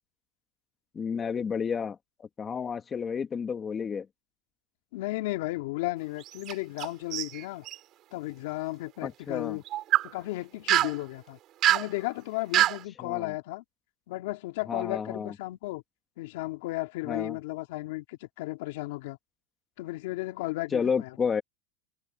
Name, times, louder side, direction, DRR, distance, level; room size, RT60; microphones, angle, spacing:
voice 1, 0.9-4.1 9.0-9.6 12.5-12.6 13.0-13.3 14.7-15.3 17.1-17.4 20.7-21.4, left 6 dB, 20° left, 2.0 m, -31 dB
voice 2, 4.9-7.6 8.1-9.6 10.0-11.4 11.7-13.6 14.1-15.8 16.2-19.2 19.8-21.2, left 19 dB, 65° left, 2.4 m, -34 dB
sound 1, 6.2-6.9 7.1-7.8 9.7-10.1 10.7-11.0 11.6-11.9 12.5-12.8, right 14 dB, 35° right, 3.5 m, -24 dB
supercardioid pair, 150°, 0 cm